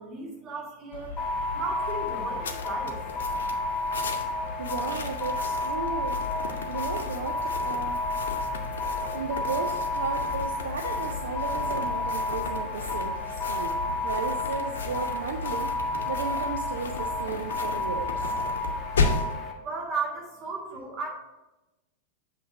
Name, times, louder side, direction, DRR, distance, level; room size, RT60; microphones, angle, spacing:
voice 1, 0.0-3.0 19.2-19.4 19.6-21.1, right 4 dB, 35° right, -2 dB, 2.0 m, -35 dB
sound 1, 0.9-19.3, left 4 dB, 65° left, 0.8 m, -35 dB
sound 2, 1.2-19.5, left 2 dB, 15° left, 1.2 m, -31 dB
voice 2, 4.6-6.2 6.7-8.0 9.1-18.3 18.6-18.8, right 5 dB, 65° right, 4 dB, 0.5 m, -35 dB
7.6 x 3.3 x 6.0 m, 1.0 s
figure-of-eight pair, 90°, 0 cm